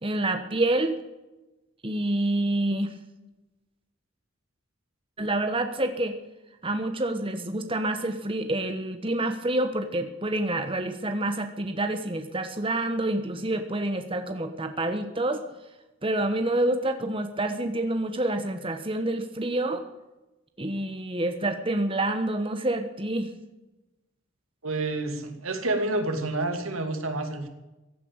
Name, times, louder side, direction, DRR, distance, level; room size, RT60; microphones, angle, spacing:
voice 1, 0.0-1.0 1.8-2.9 5.2-6.1 6.6-15.4 16.0-19.8 20.6-23.3, right 1 dB, 25° right, 7 dB, 1.3 m, -27 dB
voice 2, 24.6-27.5, right 2 dB, 85° right, 6 dB, 2.7 m, -29 dB
16.0 x 9.5 x 9.0 m, 1.0 s
head